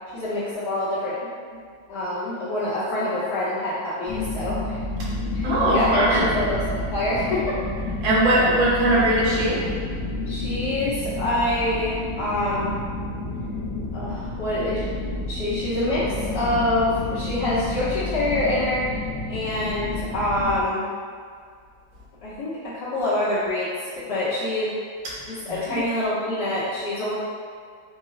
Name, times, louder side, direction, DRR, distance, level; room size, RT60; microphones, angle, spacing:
voice 1, 0.1-1.2 1.5-1.6 1.9-4.8 5.3-6.6 6.9-7.6 10.3-12.7 13.9-14.9 15.3-20.8 22.2-24.7 25.3-27.2, left 1 dB, 65° left, -11 dB, 1.3 m, -26 dB
sound 1, 4.1-20.6, left 2 dB, 85° left, 0.7 m, -30 dB
voice 2, 5.4-6.3 8.0-9.7 25.5-25.8, right 1 dB, 80° right, -7 dB, 1.8 m, -20 dB
4.8 x 2.0 x 3.7 m, 2.1 s
omnidirectional pair, 2.1 m